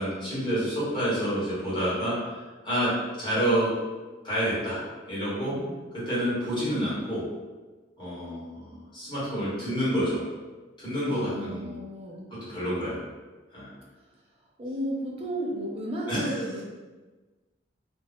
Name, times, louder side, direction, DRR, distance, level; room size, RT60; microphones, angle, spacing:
voice 1, 0.0-2.9 3.2-3.7 4.2-4.8 5.1-5.5 6.1-7.2 8.0-10.2 10.8-11.8 12.5-13.0 13.5-13.7 16.1-16.4, equal, 25° left, -9 dB, 1.2 m, -28 dB
voice 2, 11.0-12.3 14.6-16.6, right 1 dB, 30° right, -2 dB, 0.5 m, -34 dB
2.5 x 2.3 x 3.4 m, 1.3 s
head